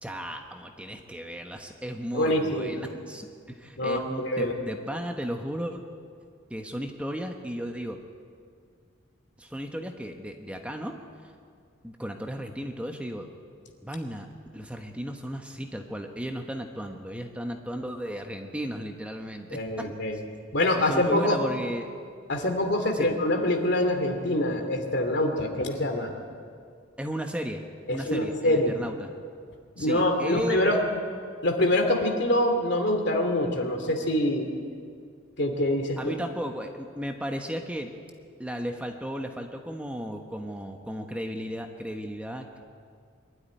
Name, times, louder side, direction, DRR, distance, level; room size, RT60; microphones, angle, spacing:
voice 1, 0.0-5.8 6.5-8.0 9.4-11.0 11.2-11.3 11.8-13.3 13.8-14.3 14.5-19.6 20.7-21.9 22.9-23.1 27.0-27.6 27.9-29.1 29.8-30.8 36.0-37.9 38.4-42.6, equal, 5° right, 3 dB, 1.2 m, -35 dB
voice 2, 2.1-2.9 3.8-4.5 19.5-20.2 20.5-21.4 22.3-26.1 27.9-28.8 29.8-30.8 31.4-34.5 35.4-36.1, left 1 dB, 60° left, 4 dB, 2.7 m, -25 dB
23.5 x 12.5 x 9.9 m, 2.2 s
head